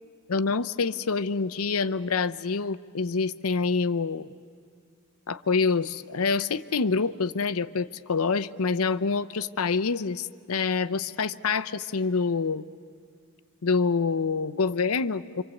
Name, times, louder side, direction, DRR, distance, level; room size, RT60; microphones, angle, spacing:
voice 1, 0.3-4.3 5.3-12.6 13.6-15.4, left 4 dB, 80° left, 15 dB, 0.7 m, -26 dB
27.5 x 25.5 x 8.2 m, 2.1 s
head